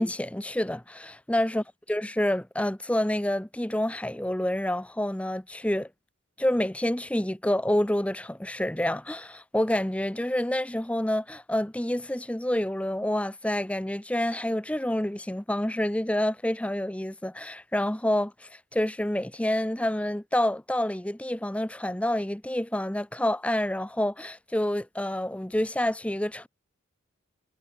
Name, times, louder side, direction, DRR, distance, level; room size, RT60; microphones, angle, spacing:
voice 1, 0.0-5.9 6.4-26.5, left 1 dB, 5° left, 0.6 m, -28 dB
head